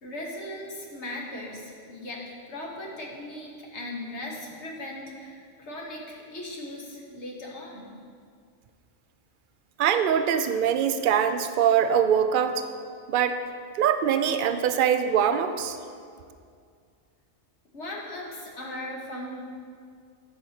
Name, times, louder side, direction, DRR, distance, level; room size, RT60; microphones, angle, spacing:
voice 1, 0.0-7.9 17.7-19.4, left 1 dB, 70° left, -2 dB, 1.6 m, -38 dB
voice 2, 9.8-12.6 13.1-13.4 13.8-15.8, right 8 dB, 60° right, 9 dB, 0.6 m, -23 dB
11.0 x 7.9 x 2.9 m, 2.2 s
omnidirectional pair, 1.2 m